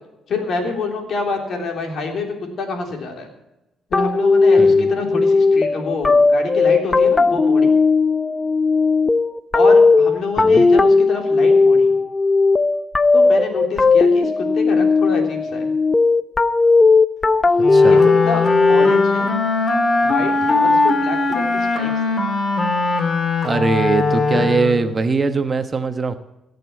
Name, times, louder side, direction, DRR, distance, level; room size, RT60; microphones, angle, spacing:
voice 1, 0.3-2.3 2.6-3.3 3.9-7.7 9.5-11.9 13.1-15.7 17.8-18.0 18.2-18.4 18.7-19.4 20.0-21.9 24.3-24.4, left 3 dB, 60° left, 3 dB, 3.4 m, -26 dB
sound 1, 3.9-19.3, left 4 dB, 20° left, 0.7 m, -15 dB
voice 2, 4.6-4.9 10.4-10.7 17.7-18.1 23.4-26.2, right 3 dB, 30° right, 9 dB, 1.0 m, -21 dB
Wind instrument woodwind instrument, 17.6-25.0, left 3 dB, 40° left, 2.4 m, -20 dB
17.0 x 6.8 x 7.1 m, 0.97 s
cardioid pair, 90°, 0 cm